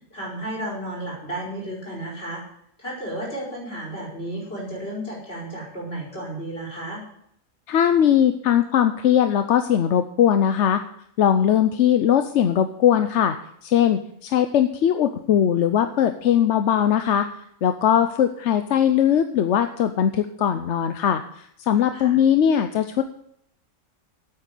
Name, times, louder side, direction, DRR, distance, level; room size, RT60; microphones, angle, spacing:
voice 1, 0.1-2.4 2.8-7.0 21.9-22.2, right 1 dB, 40° left, -2 dB, 5.0 m, -33 dB
voice 2, 7.7-10.8 11.2-13.4 13.6-17.3 17.6-23.0, left 9 dB, 60° left, 9 dB, 0.9 m, -20 dB
9.1 x 8.6 x 8.3 m, 0.71 s
omnidirectional pair, 1.5 m